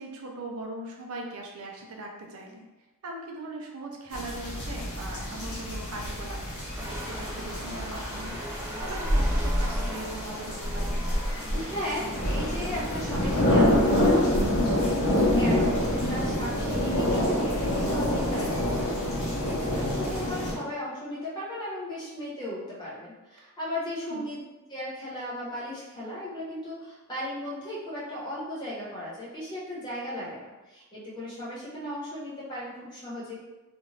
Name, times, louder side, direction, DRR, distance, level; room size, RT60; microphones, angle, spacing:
voice 1, 0.0-2.6 3.0-6.4 7.0-11.0 24.1-24.3, right 1 dB, 65° right, 0 dB, 0.6 m, -40 dB
sound 1, 4.1-20.5, left 1 dB, 70° left, 0.9 m, -27 dB
sound 2, 6.8-17.7, equal, 10° right, 0.3 m, -33 dB
voice 2, 11.5-24.4 24.7-33.4, left 1 dB, 20° left, -9 dB, 1.1 m, -36 dB
2.5 x 2.5 x 3.1 m, 1.1 s
head